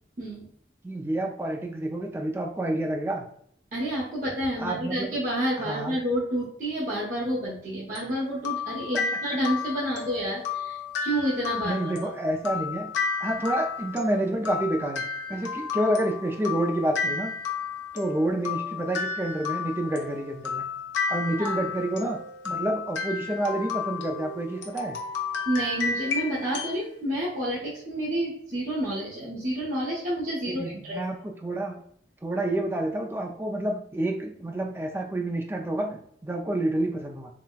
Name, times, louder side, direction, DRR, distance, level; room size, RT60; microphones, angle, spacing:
voice 1, 0.8-3.2 4.6-5.2 5.6-6.0 8.9-9.0 11.6-12.9 13.2-15.0 15.3-17.3 17.9-20.6 21.1-22.2 22.4-25.0 30.5-31.8 32.2-37.3, right 1 dB, 15° right, 2 dB, 0.3 m, -29 dB
voice 2, 3.7-11.9 21.4-21.5 25.5-31.0, right 1 dB, 45° right, -7 dB, 0.8 m, -29 dB
sound 1, 8.0-26.8, left 5 dB, 80° left, 0.6 m, -32 dB
3.9 x 2.1 x 2.3 m, 0.67 s
head